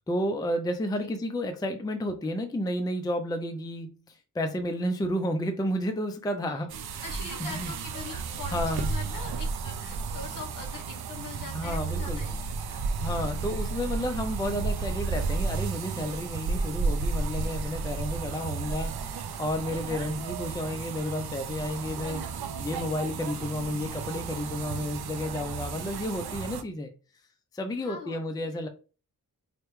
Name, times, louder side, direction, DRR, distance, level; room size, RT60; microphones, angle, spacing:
voice 1, 0.1-6.7 7.4-7.7 8.1-8.2 8.5-8.9 11.5-12.2 13.0-22.3 22.6-26.9 27.5-28.7, left 1 dB, 10° left, 0.4 m, -31 dB
sound 1, 6.7-26.6, right 4 dB, 85° right, 0.6 m, -33 dB
voice 2, 7.0-13.1 27.8-28.7, left 4 dB, 60° left, 1.0 m, -43 dB
4.9 x 2.2 x 3.0 m
wide cardioid pair, 115°, 37 cm